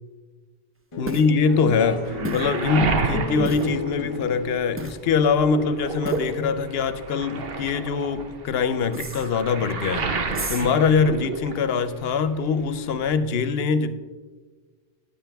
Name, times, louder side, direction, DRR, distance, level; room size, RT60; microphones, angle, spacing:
sound 1, 0.9-7.6, left 4 dB, 35° left, 0.7 m, -33 dB
voice 1, 1.0-10.0 10.5-13.9, left 5 dB, 70° left, 0.9 m, -23 dB
sound 2, 1.1-1.3 2.2-2.6 3.4-3.7 4.8-5.0 6.0-6.4 8.9-9.3 10.3-10.7, right 1 dB, 15° right, 0.5 m, -32 dB
Waves surf, 1.5-4.7 5.1-12.0 12.2-13.2, right 4 dB, 65° right, 1.1 m, -31 dB
15.0 x 9.4 x 3.4 m
omnidirectional pair, 1.1 m